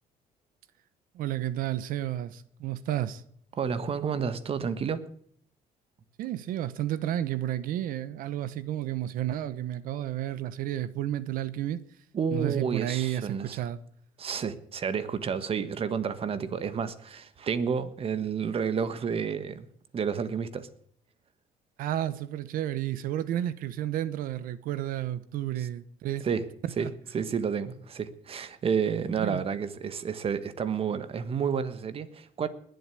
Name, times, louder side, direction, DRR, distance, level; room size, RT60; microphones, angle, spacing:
voice 1, 1.1-3.2 6.2-11.8 12.3-13.8 21.8-26.3 26.8-26.9 29.2-29.5, right 12 dB, 80° right, 1.0 m, -31 dB
voice 2, 3.5-5.0 12.1-13.6 14.2-19.7 19.9-20.7 25.6-25.7 26.2-26.5 26.8-26.9 27.1-32.5, right 6 dB, 40° right, 1.4 m, -30 dB
20.5 x 8.0 x 8.6 m
cardioid pair, 120°, 14 cm